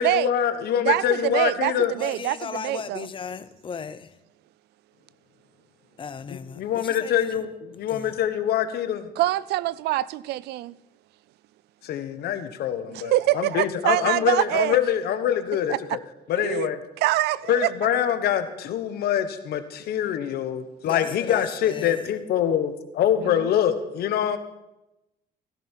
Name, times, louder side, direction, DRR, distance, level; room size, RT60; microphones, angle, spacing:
voice 1, 0.0-1.9 6.3-9.1 11.8-16.0 16.3-16.8 17.5-24.4, left 9 dB, 70° left, 1.3 m, -25 dB
voice 2, 0.9-3.1 9.2-10.7 12.9-14.8 15.7-15.8 16.4-16.7 17.0-17.7 23.2-23.5, right 16 dB, 75° right, 0.4 m, -25 dB
voice 3, 2.0-4.1 6.0-7.3 7.9-8.1 20.8-22.0, left 6 dB, 30° left, 0.7 m, -36 dB
15.0 x 13.0 x 4.6 m
cardioid pair, 110°, 17 cm